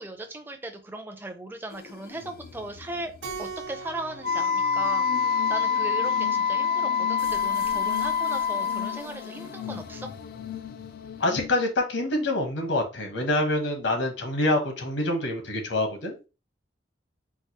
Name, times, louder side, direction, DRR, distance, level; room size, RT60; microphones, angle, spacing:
voice 1, 0.0-3.1 3.4-10.1, right 1 dB, 10° right, 4 dB, 0.5 m, -37 dB
sound 1, 1.7-11.5, left 9 dB, 55° left, 0.3 m, -40 dB
Keyboard (musical), 3.2-5.9, right 4 dB, 75° right, 1.1 m, -41 dB
Wind instrument woodwind instrument, 4.2-9.0, left 6 dB, 55° right, 0.7 m, -25 dB
voice 2, 11.2-16.3, left 1 dB, 85° left, 4 dB, 0.9 m, -26 dB
4.6 x 2.0 x 2.8 m, 0.30 s
head